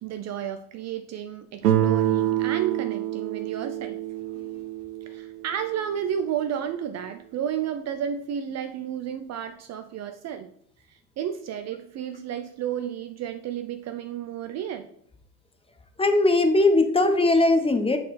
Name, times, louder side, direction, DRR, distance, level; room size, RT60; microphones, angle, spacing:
voice 1, 0.0-4.0 5.1-10.5 10.9-14.9, right 9 dB, 35° right, 9 dB, 0.5 m, -32 dB
Guitar, 1.6-6.4, right 12 dB, 90° right, 0.7 m, -27 dB
voice 2, 16.0-18.0, left 2 dB, 10° left, 7 dB, 0.8 m, -19 dB
6.4 x 4.1 x 4.1 m, 0.68 s
hypercardioid pair, 80°, 45 cm